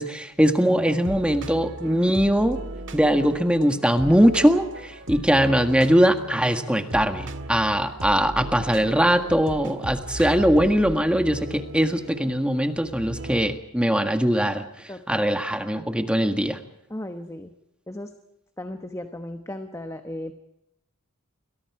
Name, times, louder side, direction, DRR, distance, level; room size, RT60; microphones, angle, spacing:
voice 1, 0.0-2.6 2.9-16.6, equal, 5° right, 6 dB, 1.7 m, -21 dB
sound 1, 0.8-13.6, right 1 dB, 55° right, 1.8 m, -37 dB
voice 2, 14.9-15.3 16.9-17.5 17.9-18.1 18.6-20.3, left 1 dB, 15° left, 6 dB, 1.1 m, -35 dB
29.5 x 23.5 x 4.9 m, 0.85 s
head